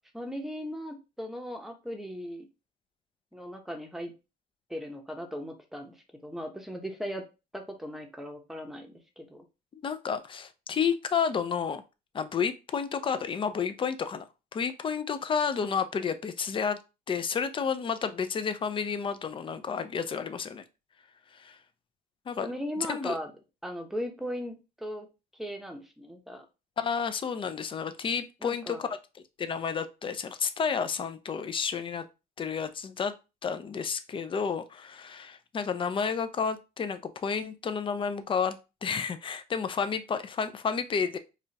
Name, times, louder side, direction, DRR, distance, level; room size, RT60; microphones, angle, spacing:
voice 1, 0.1-2.5 3.3-4.1 4.7-6.0 6.2-7.2 7.5-9.4 22.4-23.3 23.6-25.1 25.3-26.5 28.4-28.8, equal, ahead, 3 dB, 0.8 m, -38 dB
voice 2, 9.7-11.8 12.1-14.3 14.5-16.8 17.1-20.6 21.3-21.6 22.3-22.5 22.8-23.2 26.8-32.0 32.4-33.1 33.4-41.2, left 6 dB, 30° left, 11 dB, 0.5 m, -31 dB
4.8 x 2.4 x 2.8 m, 0.29 s
cardioid pair, 110°, 17 cm